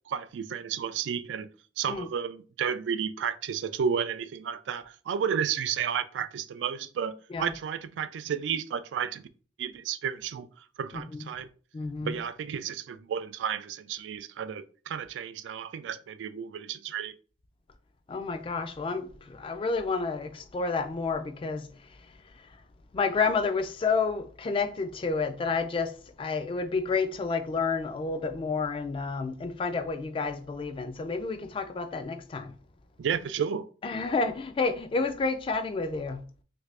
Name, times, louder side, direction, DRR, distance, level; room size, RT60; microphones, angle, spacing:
voice 1, 0.1-1.5 1.8-9.3 9.6-10.5 10.8-11.5 12.0-17.1 33.0-33.7, right 7 dB, 85° right, 0.3 m, -32 dB
voice 2, 11.7-12.2 18.1-21.7 22.9-25.9 26.2-32.5 33.8-36.2, left 4 dB, 30° left, 0.3 m, -30 dB
3.2 x 2.5 x 3.2 m
head